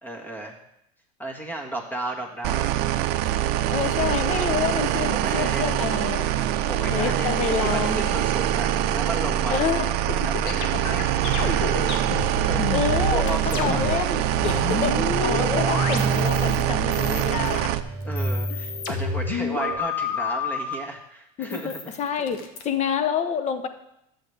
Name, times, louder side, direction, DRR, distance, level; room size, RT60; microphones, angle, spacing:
voice 1, 0.0-0.6 1.2-2.7 5.1-5.7 6.6-9.7 10.1-14.0 18.0-22.2, right 2 dB, 10° left, 2 dB, 1.7 m, -34 dB
sound 1, 2.4-17.8, right 11 dB, 55° right, 0.6 m, -24 dB
voice 2, 3.7-6.3 6.9-8.1 9.5-9.9 12.7-17.7 21.4-23.7, left 7 dB, 35° left, 9 dB, 0.9 m, -28 dB
sound 2, 10.1-16.6 16.9-17.6 18.0-20.7 21.4-22.6, left 6 dB, 70° left, 1.5 m, -30 dB
sound 3, 10.6-19.8, right 4 dB, 35° right, 1.5 m, -32 dB
12.0 x 8.1 x 3.5 m, 0.81 s
supercardioid pair, 120°, 20 cm